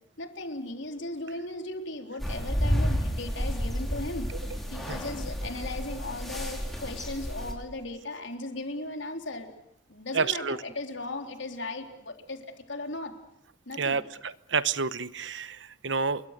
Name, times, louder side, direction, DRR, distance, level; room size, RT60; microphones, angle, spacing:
voice 1, 0.2-4.3 4.7-9.5 9.9-13.1 13.7-14.0, left 2 dB, 75° left, 4 dB, 3.7 m, -37 dB
sound 1, 2.2-7.5, equal, ahead, 4.3 m, -31 dB
voice 2, 10.1-10.6 13.8-16.2, right 5 dB, 70° right, 15 dB, 1.0 m, -29 dB
28.5 x 23.0 x 6.7 m, 0.78 s
head